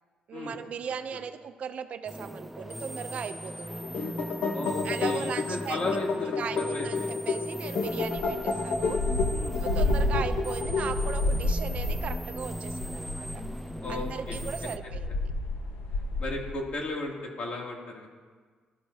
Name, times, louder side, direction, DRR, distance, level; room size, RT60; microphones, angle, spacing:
voice 1, 0.3-3.8 4.8-5.9 6.4-9.0 9.6-13.5 13.9-15.3, right 7 dB, 55° right, 10 dB, 0.6 m, -37 dB
sound 1, 2.1-14.8, equal, ahead, 0.4 m, -39 dB
sound 2, 3.7-11.3, left 4 dB, 70° left, 1.2 m, -31 dB
voice 2, 4.5-7.1 9.3-9.6 13.8-14.4 16.2-18.1, left 2 dB, 50° left, -1 dB, 2.7 m, -35 dB
sound 3, 8.0-16.5, left 1 dB, 90° left, 1.3 m, -30 dB
20.5 x 12.5 x 2.8 m, 1.5 s
cardioid pair, 120°, 3 cm